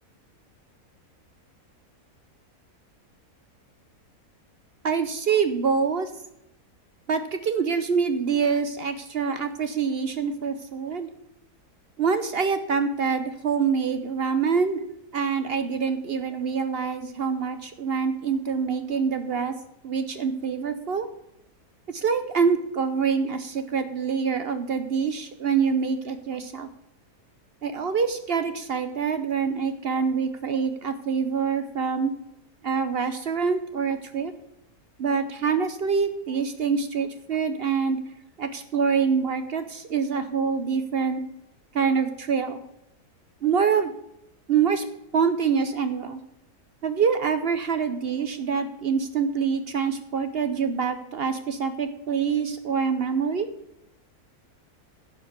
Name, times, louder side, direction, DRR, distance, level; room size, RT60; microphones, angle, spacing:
voice 1, 4.8-6.1 7.1-11.1 12.0-14.8 15.1-19.5 19.8-21.1 21.9-26.7 27.6-32.1 32.6-34.3 35.0-38.0 38.4-41.2 41.7-42.6 43.4-43.9 44.5-44.8 45.1-46.2 46.8-53.5, right 6 dB, 55° right, 10 dB, 0.7 m, -25 dB
10.5 x 5.0 x 8.0 m, 0.81 s
omnidirectional pair, 1.6 m